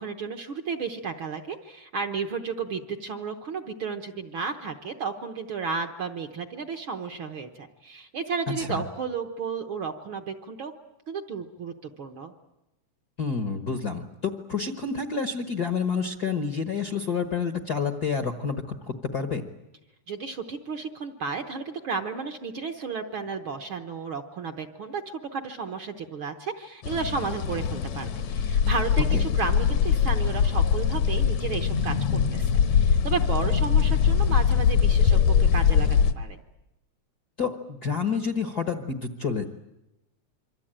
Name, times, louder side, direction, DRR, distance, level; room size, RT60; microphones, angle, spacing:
voice 1, 0.0-10.7 11.1-12.3 20.1-36.4, right 5 dB, 55° right, 6 dB, 1.6 m, -33 dB
voice 2, 13.2-19.4 29.1-29.2 37.4-39.4, left 5 dB, 50° left, 7 dB, 1.2 m, -29 dB
sound 1, 26.8-36.1, left 7 dB, 70° left, 2.2 m, -22 dB
26.5 x 24.5 x 9.0 m, 0.94 s
omnidirectional pair, 3.4 m